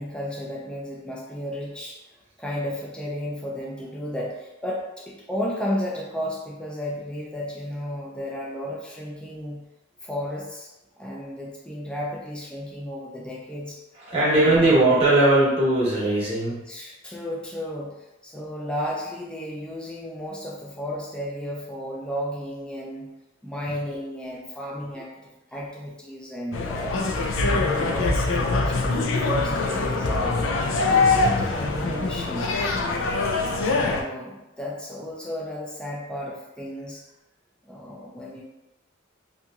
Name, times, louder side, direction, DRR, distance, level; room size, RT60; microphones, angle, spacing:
voice 1, 0.0-2.0 2.4-9.6 10.0-10.7 11.0-13.8 14.3-14.8 16.7-23.1 23.4-27.0 27.5-30.4 30.8-32.5 33.6-37.0 37.6-38.4, equal, 5° left, -4 dB, 0.4 m, -33 dB
voice 2, 14.0-16.6, right 2 dB, 30° right, -8 dB, 0.9 m, -19 dB
sound 1, 26.5-34.0, left 3 dB, 90° left, 0.4 m, -23 dB
2.8 x 2.7 x 2.4 m, 0.97 s
head